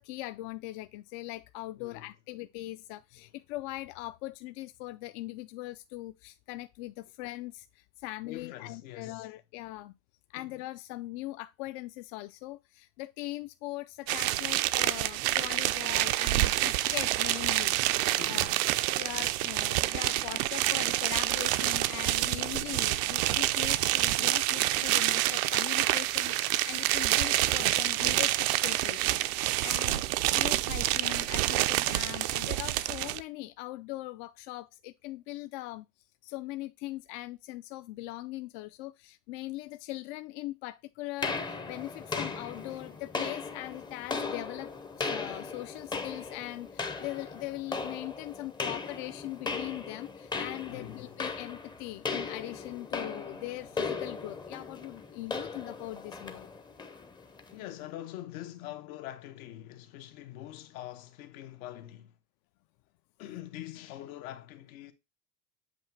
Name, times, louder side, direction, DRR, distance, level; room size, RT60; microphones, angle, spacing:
voice 1, 0.0-9.9 10.3-18.6 19.0-35.9 36.2-44.7 45.0-56.5, left 17 dB, 60° left, 0.5 m, -41 dB
voice 2, 1.8-2.1 3.2-3.3 8.2-9.3 10.3-10.5 18.2-19.0 50.7-51.2 57.5-62.2 63.2-64.9, left 13 dB, 85° left, 1.1 m, -44 dB
sound 1, 14.1-33.2, right 16 dB, 75° right, 0.6 m, -28 dB
sound 2, 41.2-57.6, left 4 dB, 10° left, 0.5 m, -37 dB
7.8 x 2.7 x 4.5 m
supercardioid pair, 140°, 42 cm